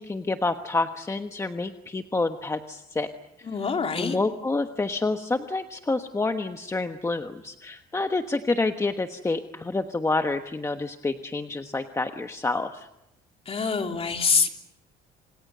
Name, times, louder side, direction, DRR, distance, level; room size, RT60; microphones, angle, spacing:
voice 1, 0.0-3.1 3.4-3.5 3.9-12.9, left 3 dB, 15° left, 7 dB, 1.3 m, -28 dB
voice 2, 3.5-4.2 13.5-14.5, left 5 dB, 35° left, 4 dB, 3.3 m, -25 dB
30.0 x 27.0 x 6.8 m, 0.89 s
cardioid pair, 110°, 17 cm